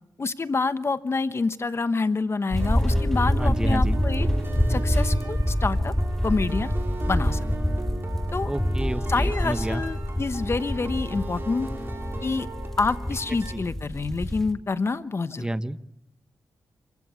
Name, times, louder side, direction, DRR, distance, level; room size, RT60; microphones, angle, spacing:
voice 1, 0.2-4.3 4.7-5.9 6.2-6.7 7.1-7.5 8.3-8.5 9.1-11.7 12.2-12.5 12.8-15.5, left 4 dB, 35° left, 12 dB, 1.1 m, -27 dB
sound 1, 2.5-14.5, equal, 5° left, 1.7 m, -26 dB
sound 2, 2.6-13.5, right 3 dB, 30° right, 5.0 m, -38 dB
voice 2, 3.4-4.0 8.5-9.8 13.5-13.6 15.4-15.8, right 1 dB, 10° right, 13 dB, 1.0 m, -30 dB
27.0 x 15.5 x 8.4 m, 0.87 s
cardioid pair, 80°, 7 cm